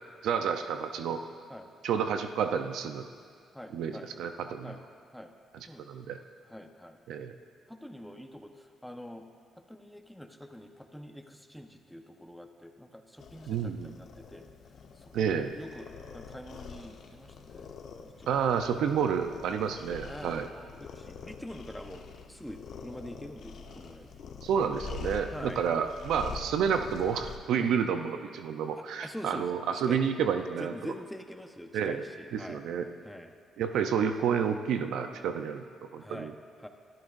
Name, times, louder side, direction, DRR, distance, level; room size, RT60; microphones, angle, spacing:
voice 1, 0.2-1.2 1.8-3.1 3.7-4.7 5.9-6.2 7.1-7.3 13.5-13.9 15.1-15.5 18.3-20.5 24.4-30.9 31.7-32.0 32.3-32.9 33.6-35.6 35.9-36.3, right 7 dB, 80° right, 7 dB, 0.7 m, -30 dB
voice 2, 3.5-4.1 4.6-4.8 5.1-5.3 5.7-5.9 6.4-7.0 7.7-9.3 9.6-14.5 15.0-17.7 18.0-18.6 19.7-20.4 20.8-24.1 25.3-25.8 27.6-27.7 28.8-30.0 30.6-32.6 33.0-33.3 36.0-36.3 36.6-36.7, equal, 5° left, 4 dB, 1.1 m, -45 dB
sound 1, 13.2-27.4, left 5 dB, 65° left, 1.2 m, -45 dB
24.0 x 13.0 x 2.6 m, 2.3 s
cardioid pair, 90°, 0 cm